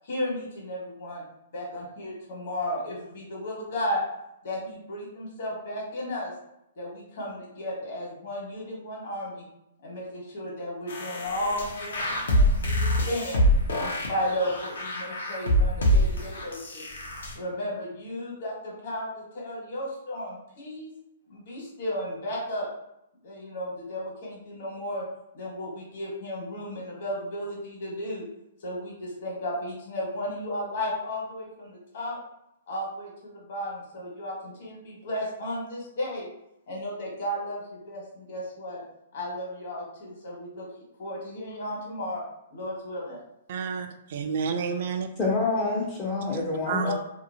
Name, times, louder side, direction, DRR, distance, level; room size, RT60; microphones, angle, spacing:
voice 1, 0.0-1.2 1.5-4.0 4.4-6.3 6.7-9.5 9.8-13.4 13.8-16.8 17.3-20.9 21.3-22.7 23.2-25.0 25.3-28.3 28.6-32.2 32.7-36.3 36.7-38.8 39.1-40.7 41.0-42.2 42.5-43.2 46.7-46.9, left 1 dB, 55° left, -4 dB, 1.3 m, -34 dB
sound 1, 10.9-17.3, equal, 85° left, 0.8 m, -25 dB
voice 2, 43.5-45.1 46.3-46.9, right 6 dB, 50° right, 6 dB, 0.4 m, -30 dB
voice 3, 45.2-46.9, left 3 dB, 15° left, -3 dB, 0.4 m, -27 dB
2.8 x 2.7 x 2.7 m, 0.82 s
hypercardioid pair, 165°, 0 cm